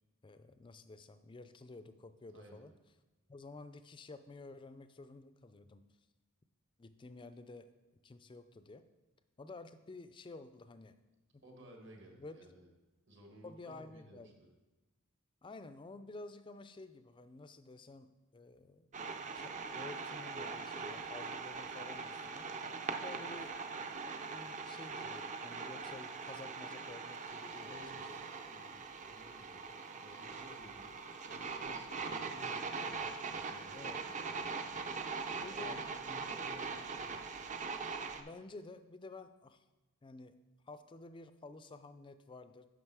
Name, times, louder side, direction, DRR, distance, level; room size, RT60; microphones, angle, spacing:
voice 1, 0.2-2.7 3.3-5.8 6.8-7.7 8.0-8.9 9.4-10.9 11.3-11.4 12.2-12.4 13.4-14.3 15.4-18.9 19.3-22.7 23.0-23.6 24.3-28.2 33.7-34.0 35.4-35.8 38.2-39.6 40.0-40.4 40.7-42.7, left 3 dB, 20° left, 11 dB, 0.3 m, -51 dB
voice 2, 2.3-2.7 11.4-12.7 13.1-14.5 27.5-28.0 28.5-29.7 30.0-31.0 31.3-33.1 33.3-34.8 35.3-37.4, equal, 55° right, 1 dB, 1.6 m, -56 dB
sound 1, 18.9-38.2, right 4 dB, 35° right, 0.5 m, -42 dB
8.8 x 6.2 x 4.7 m, 1.1 s
head